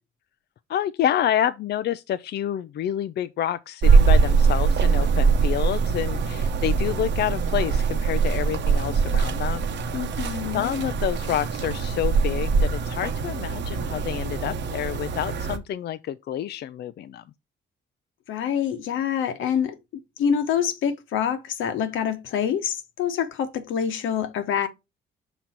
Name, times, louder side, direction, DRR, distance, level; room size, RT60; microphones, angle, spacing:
voice 1, 0.7-9.7 10.2-17.2, left 11 dB, 60° left, 0.4 m, -28 dB
sound 1, 3.8-15.6, right 5 dB, 65° right, 1.0 m, -22 dB
voice 2, 9.9-10.7 18.3-19.8 20.2-24.7, left 8 dB, 80° left, 1.1 m, -26 dB
6.0 x 4.0 x 4.3 m
cardioid pair, 90°, 20 cm